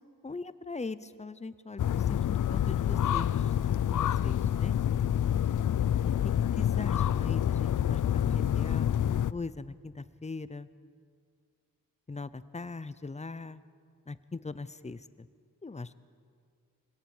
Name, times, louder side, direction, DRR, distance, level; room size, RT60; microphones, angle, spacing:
voice 1, 0.2-4.8 6.0-10.7 12.1-13.6 14.1-15.3 15.6-16.0, left 3 dB, 20° left, 15 dB, 0.7 m, -41 dB
sound 1, 1.8-9.3, left 10 dB, 60° left, 0.5 m, -27 dB
23.5 x 17.5 x 7.2 m, 2.1 s
wide cardioid pair, 95°, 34 cm